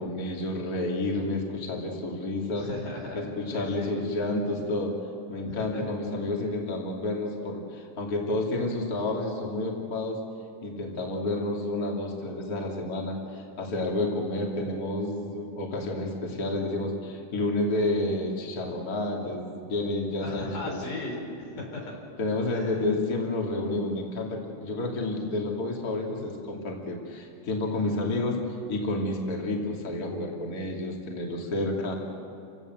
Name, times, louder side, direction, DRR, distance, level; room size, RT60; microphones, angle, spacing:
voice 1, 0.0-2.7 3.1-5.0 5.3-10.2 10.6-20.8 21.5-21.6 22.2-28.4 28.7-32.0, left 2 dB, 30° left, -1 dB, 2.9 m, -30 dB
voice 2, 2.6-4.1 5.5-5.9 20.2-21.9 22.5-22.9 26.2-26.3, left 2 dB, 85° left, 1 dB, 5.7 m, -38 dB
29.0 x 17.0 x 7.9 m, 2.7 s
omnidirectional pair, 3.6 m